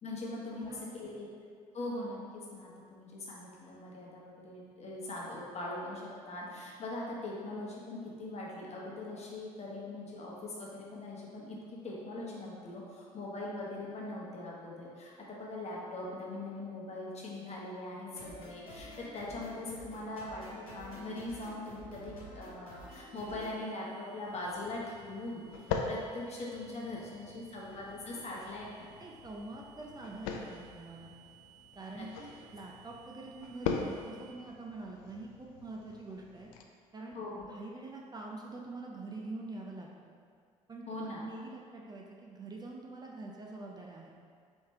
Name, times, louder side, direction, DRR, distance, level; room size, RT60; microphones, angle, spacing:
voice 1, 0.0-1.3 1.7-28.9 32.0-32.1 37.1-37.5 40.9-41.2, left 2 dB, 40° left, -4 dB, 1.1 m, -41 dB
voice 2, 0.5-0.9 26.9-27.0 29.0-31.1 31.8-36.5 36.9-37.2 37.5-40.1 40.7-44.1, right 2 dB, 25° right, -2 dB, 0.5 m, -45 dB
sound 1, 18.1-23.5, equal, 90° left, 0.8 m, -50 dB
sound 2, 22.9-34.3, right 11 dB, 70° right, 1.1 m, -61 dB
sound 3, 24.2-36.6, left 5 dB, 70° left, 0.4 m, -42 dB
4.4 x 3.2 x 3.5 m, 2.1 s
figure-of-eight pair, 55°, 18 cm